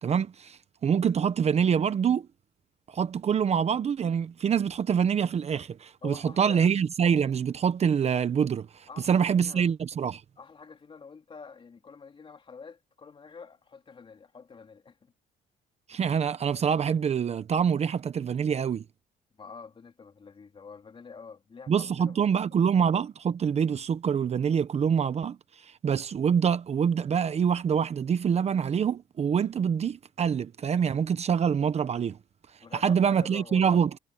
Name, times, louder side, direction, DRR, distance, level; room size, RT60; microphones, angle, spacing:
voice 1, 0.0-2.3 2.9-10.2 15.9-18.8 21.7-32.2 32.7-34.0, right 7 dB, 40° right, 1.0 m, -25 dB
voice 2, 6.0-6.7 8.9-9.7 10.4-15.1 19.4-22.2 22.5-22.6 32.6-33.8, left 5 dB, 30° left, 3.5 m, -47 dB
cardioid pair, 110°, 17 cm